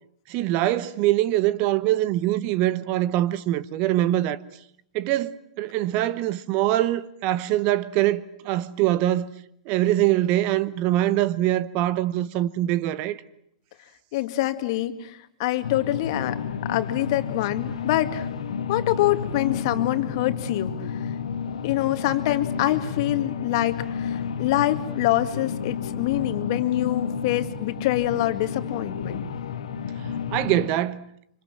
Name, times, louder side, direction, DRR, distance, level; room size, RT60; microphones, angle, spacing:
voice 1, 0.3-4.4 4.9-9.3 9.7-13.2 30.3-31.1, right 14 dB, 40° right, 1.1 m, -23 dB
voice 2, 14.1-18.3 18.7-21.1 21.6-29.2, left 14 dB, 50° left, 2.1 m, -25 dB
sound 1, 15.6-30.7, left 7 dB, 70° left, 2.0 m, -31 dB
27.0 x 26.0 x 7.7 m
figure-of-eight pair, 105°, 3 cm